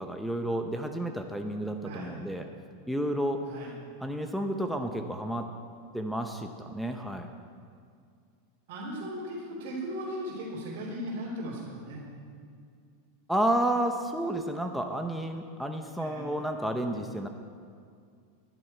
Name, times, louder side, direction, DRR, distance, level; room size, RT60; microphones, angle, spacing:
voice 1, 0.0-2.5 2.9-3.4 4.0-5.5 5.9-7.3 13.3-17.3, right 1 dB, ahead, 3 dB, 0.7 m, -31 dB
voice 2, 1.8-2.2 3.4-3.7 8.7-12.0 16.0-16.3, equal, 60° right, -7 dB, 3.3 m, -37 dB
14.0 x 11.0 x 4.4 m, 2.2 s
supercardioid pair, 150°, 0 cm